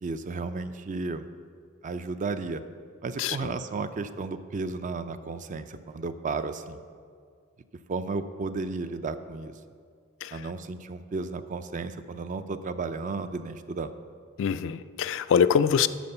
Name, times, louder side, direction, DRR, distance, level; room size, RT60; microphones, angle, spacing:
voice 1, 0.0-1.3 1.8-2.6 3.0-6.8 7.9-9.5 10.3-13.9, right 3 dB, 40° right, 10 dB, 0.4 m, -33 dB
voice 2, 3.2-3.5 10.2-10.5 14.4-15.9, left 7 dB, 65° left, 13 dB, 0.3 m, -24 dB
11.0 x 4.3 x 6.7 m, 2.1 s
head